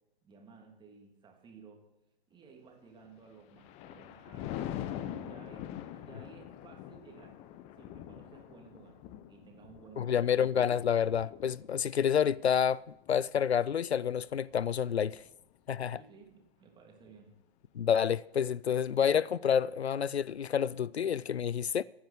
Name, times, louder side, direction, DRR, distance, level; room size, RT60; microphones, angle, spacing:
voice 1, 0.2-1.8 2.3-7.4 7.7-10.2 15.9-17.3, right 5 dB, 15° right, 2.9 m, -55 dB
Thunder, 3.2-14.7 15.2-15.5, left 11 dB, 20° left, 0.6 m, -44 dB
voice 2, 10.0-15.2 15.7-16.0 17.7-21.8, left 8 dB, 85° left, 0.5 m, -29 dB
15.0 x 9.5 x 6.6 m
figure-of-eight pair, 120°, 31 cm